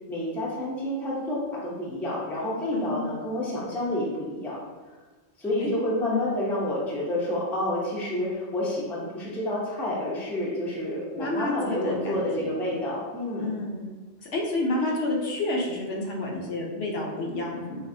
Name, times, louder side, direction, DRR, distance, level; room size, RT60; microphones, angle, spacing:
voice 1, 0.1-4.6 5.4-13.6, left 1 dB, ahead, -6 dB, 0.4 m, -29 dB
voice 2, 2.7-3.1 5.6-5.7 6.1-6.2 11.2-12.5 13.4-13.8 14.2-17.9, left 2 dB, 70° left, -1 dB, 0.9 m, -29 dB
4.0 x 2.4 x 2.6 m, 1.3 s
omnidirectional pair, 1.1 m